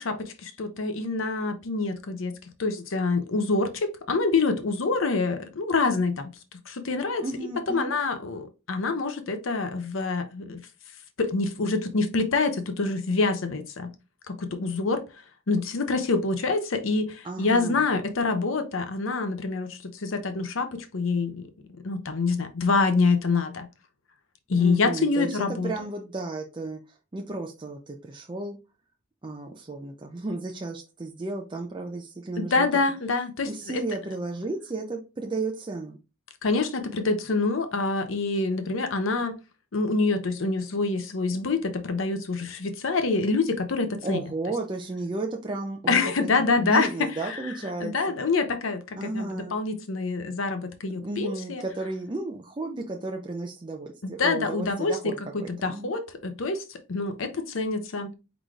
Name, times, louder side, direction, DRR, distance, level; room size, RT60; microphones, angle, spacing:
voice 1, 0.0-2.3 2.6-6.3 6.7-7.2 7.7-10.6 11.2-13.9 14.3-15.0 15.5-23.7 24.5-25.7 32.4-33.5 36.4-39.4 39.7-44.2 45.9-46.9 47.3-47.4 47.8-51.6 54.0-58.1, left 3 dB, 85° left, 0.7 m, -26 dB
voice 2, 7.2-7.9 17.2-17.9 24.6-26.8 27.1-28.6 29.2-32.7 33.5-36.0 44.0-47.9 49.0-49.6 51.0-55.1 55.4-55.9, right 2 dB, 25° right, 0.5 m, -33 dB
4.8 x 3.9 x 2.3 m
head